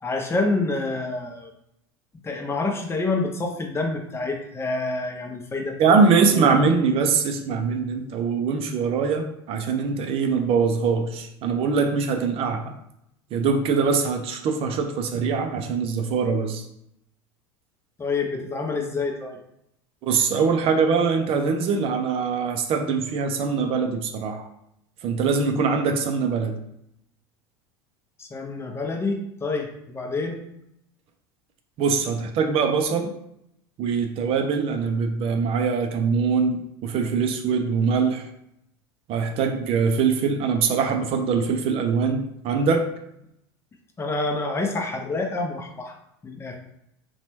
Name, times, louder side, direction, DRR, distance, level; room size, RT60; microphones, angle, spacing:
voice 1, 0.0-1.5 2.2-5.9 6.3-6.5 18.0-19.4 28.2-30.4 44.0-45.9 46.2-46.6, left 3 dB, 20° left, 2 dB, 0.6 m, -27 dB
voice 2, 5.8-12.8 13.3-16.6 20.0-24.5 25.0-26.6 31.8-33.1 33.8-38.3 39.1-42.9, right 5 dB, 45° right, 5 dB, 0.4 m, -23 dB
2.9 x 2.2 x 3.0 m, 0.78 s
hypercardioid pair, 85°, 14 cm